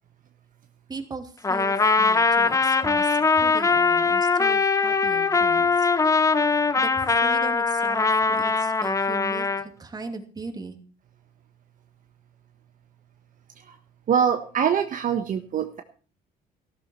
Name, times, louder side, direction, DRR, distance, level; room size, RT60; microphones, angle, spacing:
voice 1, 0.9-5.9 6.8-10.8, right 3 dB, 25° right, 6 dB, 2.6 m, -39 dB
Trumpet, 1.4-9.6, left 4 dB, 20° left, 0.9 m, -21 dB
voice 2, 14.1-15.8, right 8 dB, 50° right, 6 dB, 1.4 m, -24 dB
15.0 x 13.0 x 4.5 m, 0.39 s
cardioid pair, 110°, 17 cm